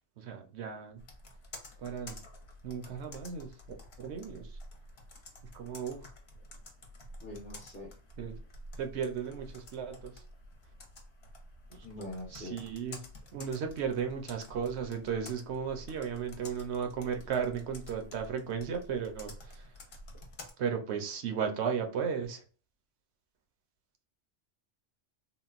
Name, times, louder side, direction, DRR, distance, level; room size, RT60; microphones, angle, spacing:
voice 1, 0.2-1.0 1.8-2.2 2.6-3.5 4.0-4.6 5.5-6.0 8.2-8.4 8.8-10.2 11.7-11.8 12.3-13.0 13.3-19.7 20.6-22.4, right 7 dB, 70° right, 5 dB, 0.9 m, -35 dB
Computer keyboard, 1.0-20.5, left 1 dB, 60° left, 0.9 m, -50 dB
voice 2, 7.2-7.9 11.8-12.6, left 1 dB, 10° left, -4 dB, 0.5 m, -43 dB
3.7 x 2.1 x 2.4 m, 0.40 s
omnidirectional pair, 1.2 m